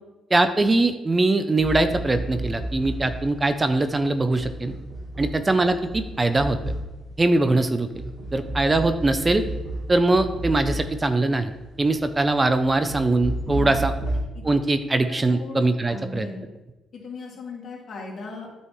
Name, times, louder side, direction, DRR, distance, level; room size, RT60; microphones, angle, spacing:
voice 1, 0.3-4.7 5.2-6.6 7.2-7.9 8.3-9.4 9.9-11.5 11.8-13.9 14.4-16.3, right 2 dB, 25° right, 9 dB, 0.5 m, -22 dB
sound 1, 1.6-14.2, right 1 dB, 55° right, 2.3 m, -32 dB
voice 2, 15.3-16.4 16.9-18.5, left 3 dB, 60° left, -3 dB, 2.5 m, -37 dB
9.7 x 5.4 x 3.1 m, 1.0 s
cardioid pair, 90°, 0 cm